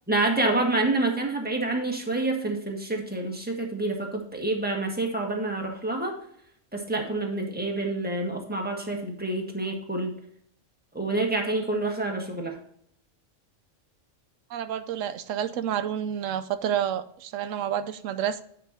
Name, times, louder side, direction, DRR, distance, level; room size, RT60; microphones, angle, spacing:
voice 1, 0.1-6.1 6.7-10.2 10.9-12.6, right 2 dB, 10° right, 0 dB, 1.6 m, -27 dB
voice 2, 14.5-18.4, right 9 dB, 90° right, 12 dB, 1.0 m, -29 dB
9.6 x 5.6 x 4.1 m, 0.67 s
omnidirectional pair, 1.3 m